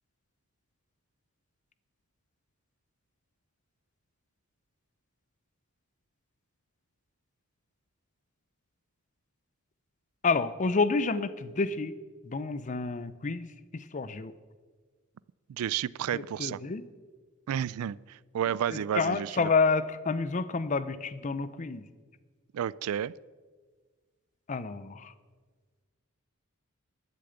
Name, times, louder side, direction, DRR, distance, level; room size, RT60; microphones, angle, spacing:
voice 1, 10.2-11.9 12.2-13.5 13.7-14.3 16.1-16.8 18.7-21.8 24.5-25.1, left 4 dB, 35° left, 15 dB, 0.5 m, -29 dB
voice 2, 15.5-16.6 17.5-19.5 22.5-23.1, right 9 dB, 80° right, 21 dB, 0.3 m, -31 dB
11.5 x 6.7 x 8.0 m, 1.5 s
head